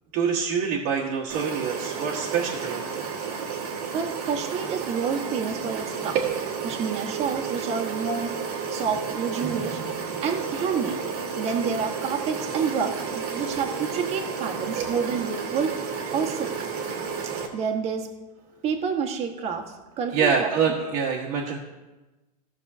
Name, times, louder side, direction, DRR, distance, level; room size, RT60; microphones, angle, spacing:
voice 1, 0.1-2.9 6.1-6.3 14.8-14.9 20.1-21.6, right 6 dB, 50° right, -4 dB, 1.4 m, -25 dB
sound 1, 1.3-17.5, right 6 dB, 80° right, 1.7 m, -32 dB
voice 2, 3.9-6.1 6.6-8.4 8.7-9.8 10.2-11.0 11.4-15.8 16.1-16.5 17.2-18.1 18.6-20.5, right 6 dB, 35° right, 3 dB, 1.4 m, -29 dB
16.0 x 6.4 x 2.7 m, 1.1 s
supercardioid pair, 130°, 19 cm